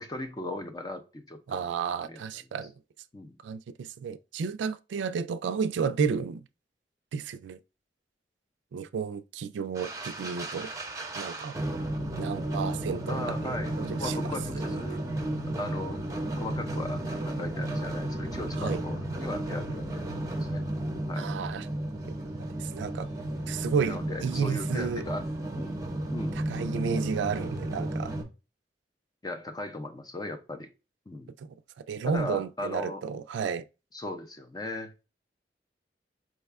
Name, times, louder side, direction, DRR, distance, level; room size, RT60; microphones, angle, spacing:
voice 1, 0.0-1.6 2.0-2.2 3.1-3.4 13.1-15.0 15.6-16.0 16.4-20.6 21.1-21.3 23.9-25.2 25.6-25.8 26.1-26.4 29.2-30.7 31.1-31.3 32.1-33.0 33.9-34.9, left 2 dB, 20° left, 0.5 m, -37 dB
voice 2, 1.5-2.7 3.4-6.5 7.1-7.6 8.7-10.7 11.2-11.6 12.2-14.2 14.6-14.8 18.6-18.8 21.1-21.7 22.1-22.2 22.6-23.1 23.5-25.0 26.5-28.1 31.4-31.6 31.9-33.6, right 6 dB, 85° right, 0.3 m, -32 dB
sound 1, 9.8-28.2, right 1 dB, 20° right, 0.6 m, -33 dB
4.7 x 2.3 x 3.3 m
head